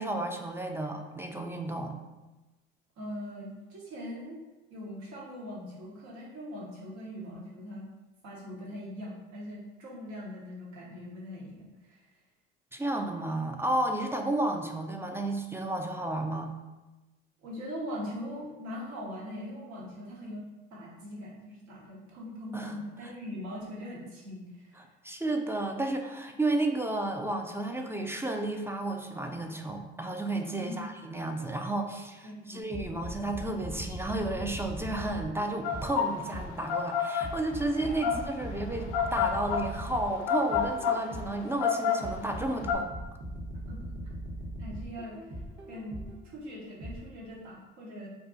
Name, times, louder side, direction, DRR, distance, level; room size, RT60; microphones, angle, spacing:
voice 1, 0.0-2.0 12.7-16.5 22.5-22.8 24.8-42.9, right 2 dB, 10° right, 3 dB, 0.3 m, -32 dB
voice 2, 3.0-4.4 4.7-7.8 8.2-12.0 17.4-20.4 20.7-24.9 30.5-30.9 32.2-32.6 37.8-38.1 43.7-43.8 44.6-45.2 45.7-48.1, equal, 70° right, -4 dB, 1.0 m, -41 dB
sound 1, 32.7-36.7 37.2-41.5 42.0-46.3 46.8-47.0, right 1 dB, 40° right, 0.9 m, -40 dB
sound 2, 35.6-42.7, left 7 dB, 75° left, 0.5 m, -29 dB
2.4 x 2.2 x 3.9 m, 1.1 s
hypercardioid pair, 60°, 29 cm